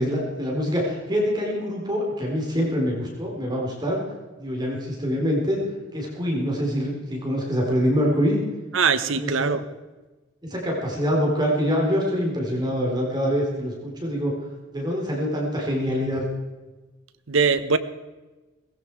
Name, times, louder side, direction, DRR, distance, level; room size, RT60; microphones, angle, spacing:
voice 1, 0.0-4.0 4.4-5.6 5.9-8.4 9.1-9.5 10.4-14.3 14.7-16.2, equal, 20° right, -2 dB, 3.9 m, -25 dB
voice 2, 8.7-9.6 17.3-17.8, right 5 dB, 90° right, 11 dB, 1.0 m, -21 dB
18.0 x 16.0 x 4.7 m, 1.2 s
head